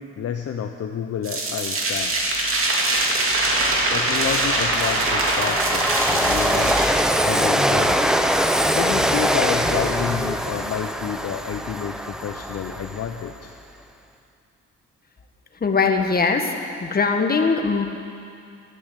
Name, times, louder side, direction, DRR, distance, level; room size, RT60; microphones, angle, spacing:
voice 1, 0.0-2.1 3.9-6.9 7.2-8.1 8.6-13.5, left 8 dB, 55° left, 4 dB, 0.8 m, -29 dB
sound 1, 1.2-6.9, right 2 dB, 45° right, 2.6 m, -22 dB
Train, 2.5-2.6 3.0-13.4, equal, ahead, 0.8 m, -23 dB
voice 2, 15.6-16.5 16.8-17.8, left 4 dB, 30° left, 4 dB, 1.7 m, -20 dB
12.5 x 12.5 x 8.1 m, 2.4 s
cardioid pair, 90°, 30 cm